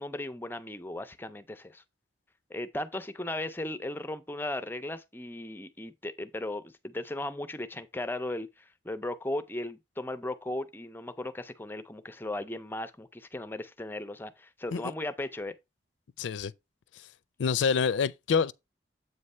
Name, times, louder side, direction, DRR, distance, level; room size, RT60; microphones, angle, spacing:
voice 1, 0.0-1.8 2.5-15.5, left 1 dB, 10° left, 0.5 m, -36 dB
voice 2, 16.2-16.5 17.4-18.5, left 6 dB, 85° left, 0.4 m, -26 dB
8.0 x 3.2 x 5.4 m
head